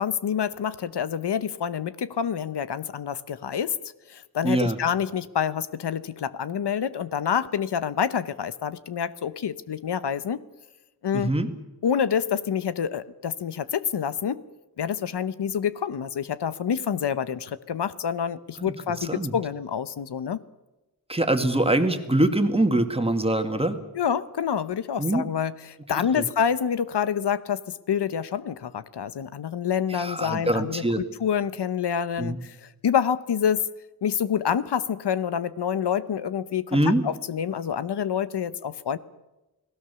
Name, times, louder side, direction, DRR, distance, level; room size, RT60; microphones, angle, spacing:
voice 1, 0.0-3.8 4.1-10.4 11.0-11.3 11.8-14.4 14.8-20.4 23.9-33.7 34.0-39.0, left 8 dB, 85° left, 14 dB, 1.0 m, -27 dB
voice 2, 4.4-4.8 11.1-11.5 18.6-18.7 19.1-19.3 21.1-23.8 25.0-25.2 26.1-26.2 29.9-31.0 32.2-32.4 36.7-37.0, right 1 dB, 15° right, 6 dB, 2.0 m, -23 dB
29.5 x 19.0 x 7.0 m, 1.0 s
wide cardioid pair, 120°, 40 cm